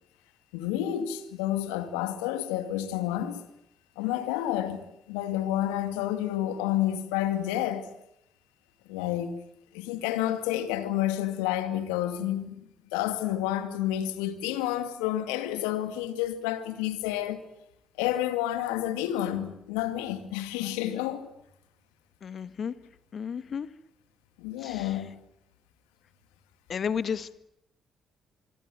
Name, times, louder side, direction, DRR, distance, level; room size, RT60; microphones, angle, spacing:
voice 1, 0.5-3.4 4.0-4.8 5.1-7.9 8.9-9.3 9.7-12.6 12.9-17.5 18.0-21.3 24.4-25.1, left 12 dB, 80° left, 2.3 m, -29 dB
voice 2, 22.2-22.7 23.1-23.7 24.6-24.9 26.7-27.4, left 7 dB, 55° left, 1.8 m, -32 dB
26.5 x 24.5 x 9.2 m
hypercardioid pair, 45°, 0 cm